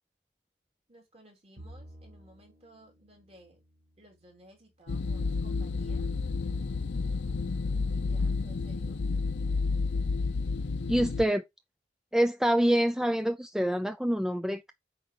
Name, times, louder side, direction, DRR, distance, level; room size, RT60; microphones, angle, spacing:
voice 1, 0.9-3.6 4.0-6.1 7.9-9.0, right 1 dB, 35° right, 3.5 m, -57 dB
Bowed string instrument, 1.6-5.1, right 1 dB, 75° right, 2.3 m, -54 dB
sound 1, 4.9-11.2, left 4 dB, 75° left, 0.5 m, -30 dB
voice 2, 10.9-11.4 12.1-14.7, equal, 5° right, 0.4 m, -26 dB
8.3 x 5.0 x 3.8 m
head